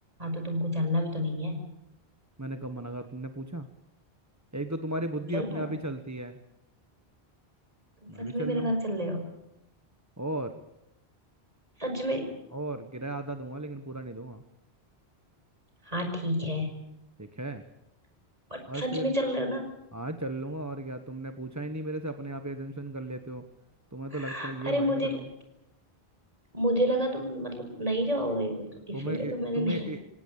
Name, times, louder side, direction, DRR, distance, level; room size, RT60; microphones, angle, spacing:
voice 1, 0.2-1.6 5.3-5.6 8.0-9.3 11.8-12.3 15.8-16.8 18.5-19.6 24.1-25.2 26.5-29.9, equal, 35° right, 4 dB, 5.5 m, -29 dB
voice 2, 2.4-3.7 4.5-6.4 8.1-8.7 10.2-10.5 12.5-14.4 17.2-17.6 18.7-19.1 19.9-23.4 23.9-25.3 28.9-30.0, right 1 dB, 15° right, 7 dB, 1.1 m, -35 dB
26.0 x 17.5 x 8.7 m, 0.85 s
omnidirectional pair, 1.1 m